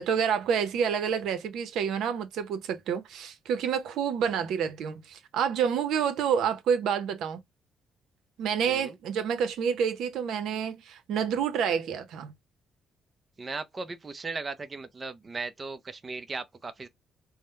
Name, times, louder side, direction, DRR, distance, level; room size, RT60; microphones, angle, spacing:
voice 1, 0.0-7.4 8.4-12.3, right 7 dB, 80° right, 0.7 m, -28 dB
voice 2, 8.7-9.0 13.4-16.9, right 3 dB, 30° right, 0.5 m, -37 dB
3.5 x 2.1 x 4.3 m
cardioid pair, 90°, 0 cm